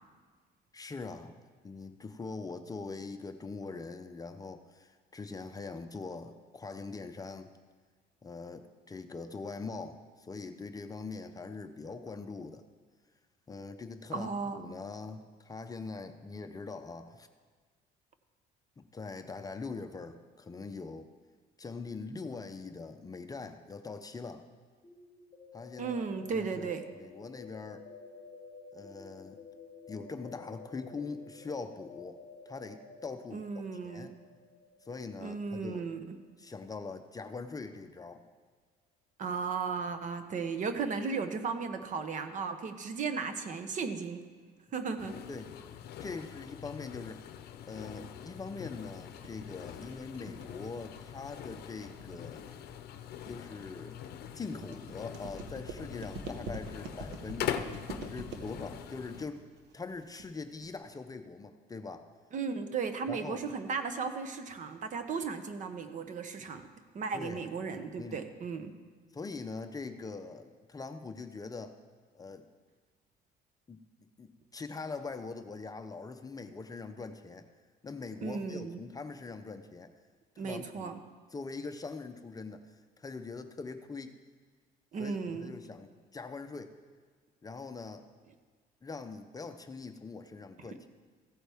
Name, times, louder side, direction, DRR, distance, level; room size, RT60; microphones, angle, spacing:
voice 1, 0.7-1.4 1.6-7.5 8.2-12.6 13.5-14.3 14.6-17.3 18.8-21.1 21.6-24.5 25.5-26.0 26.3-27.9 28.7-29.4 29.9-34.1 34.8-35.9 36.4-38.2 45.3-45.7 46.0-47.2 47.7-52.4 53.3-54.0 54.3-57.5 58.0-59.4 59.7-62.1 63.1-63.4 67.1-67.4 68.0-68.3 69.1-71.8 72.1-72.4 73.7-73.8 74.2-77.5 77.8-79.9 80.4-80.9 81.3-84.2 85.0-86.7 87.4-88.1 88.8-90.9, left 4 dB, 20° left, 8 dB, 0.6 m, -42 dB
voice 2, 14.1-14.6 25.8-26.8 33.3-34.1 35.2-36.2 39.2-44.2 44.7-45.1 62.3-66.7 66.9-68.7 78.2-78.8 80.4-81.0 84.9-85.5, right 5 dB, 50° right, 9 dB, 0.9 m, -35 dB
sound 1, 24.8-36.6, left 4 dB, 40° left, 1.0 m, -52 dB
sound 2, 45.0-59.3, left 10 dB, 70° left, 0.6 m, -43 dB
sound 3, 48.8-60.8, right 2 dB, 85° right, 1.3 m, -45 dB
15.0 x 8.6 x 3.5 m, 1.5 s
cardioid pair, 110°, 17 cm